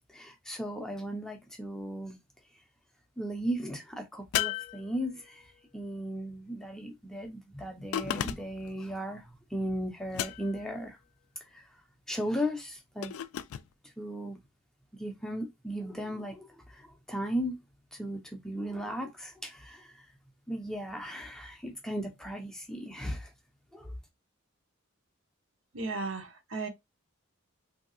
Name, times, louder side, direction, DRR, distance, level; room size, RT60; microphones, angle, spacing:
voice 1, 0.1-2.2 3.2-11.0 11.5-11.6 12.1-13.1 14.0-14.4 15.0-17.6 17.9-20.0 20.5-23.3 23.7-23.9, equal, 5° left, 0.4 m, -36 dB
open close metal pot, 4.3-5.4 7.9-8.7 10.1-10.7 13.0-13.7, left 11 dB, 85° left, 0.3 m, -34 dB
voice 2, 25.7-26.7, right 3 dB, 65° right, 0.8 m, -35 dB
3.2 x 2.7 x 2.6 m
head